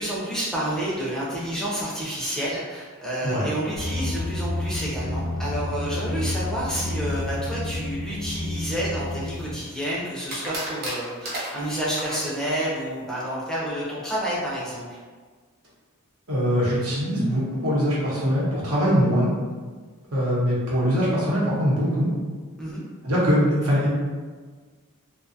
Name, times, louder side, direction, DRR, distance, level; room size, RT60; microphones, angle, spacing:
voice 1, 0.0-14.8 22.6-22.8, right 1 dB, 5° left, -7 dB, 0.5 m, -29 dB
sound 1, 3.8-9.6, left 1 dB, 65° left, 0.4 m, -30 dB
sound 2, 8.8-9.7 10.3-12.3, right 1 dB, 45° right, 0.6 m, -33 dB
voice 2, 16.3-19.3 20.1-22.1 23.0-23.9, equal, 85° right, -7 dB, 1.0 m, -22 dB
2.4 x 2.3 x 2.6 m, 1.5 s
head